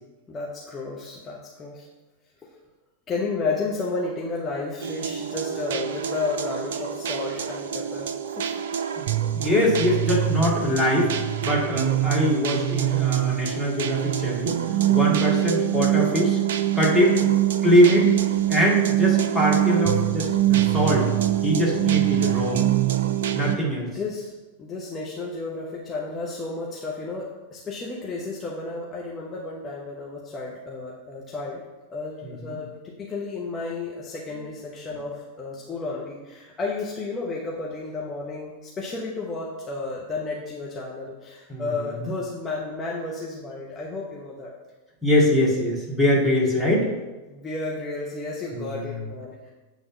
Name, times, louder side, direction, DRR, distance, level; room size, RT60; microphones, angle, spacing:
voice 1, 0.3-1.9 2.4-2.5 3.1-8.1 8.4-8.5 17.2-17.3 23.9-24.3 24.6-31.6 31.9-44.5 47.3-49.5, left 3 dB, 20° left, -4 dB, 1.0 m, -32 dB
sound 1, 4.8-23.6, right 12 dB, 60° right, 0.4 m, -24 dB
voice 2, 9.0-11.1 11.4-14.6 14.9-16.4 16.7-17.2 17.6-18.1 18.5-21.1 21.4-22.6 23.3-23.9 32.2-32.6 41.5-42.1 45.0-46.9 48.5-49.0, equal, 5° right, -5 dB, 2.2 m, -22 dB
8.7 x 3.4 x 6.1 m, 1.2 s
figure-of-eight pair, 90°, 0 cm